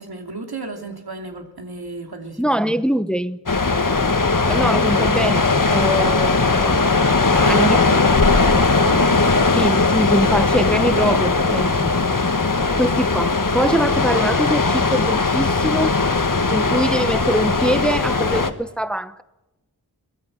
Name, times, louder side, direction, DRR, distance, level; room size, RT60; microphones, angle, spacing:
voice 1, 0.0-2.4 7.3-9.7 11.6-11.8 12.4-12.5, right 3 dB, 80° right, 4 dB, 2.9 m, -32 dB
voice 2, 2.4-3.4 4.5-6.8 7.5-7.8 9.5-11.9 12.8-16.0 16.5-19.2, equal, ahead, 13 dB, 0.9 m, -23 dB
sound 1, 3.5-18.5, left 3 dB, 55° left, 1.5 m, -18 dB
23.5 x 17.5 x 7.5 m, 1.0 s
wide cardioid pair, 55°, 38 cm